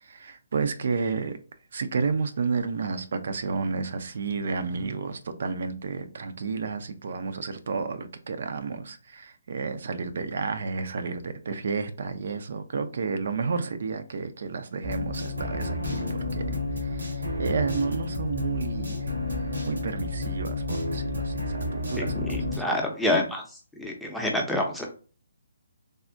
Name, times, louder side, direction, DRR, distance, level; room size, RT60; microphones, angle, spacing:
voice 1, 0.0-1.4 1.7-19.1 19.6-22.6, right 4 dB, 60° right, 0.4 m, -31 dB
sound 1, 14.8-22.6, left 2 dB, 90° right, 1.2 m, -30 dB
voice 2, 22.0-23.4 23.8-24.9, left 1 dB, 5° left, 0.6 m, -27 dB
3.4 x 2.0 x 2.5 m
figure-of-eight pair, 145°, 0 cm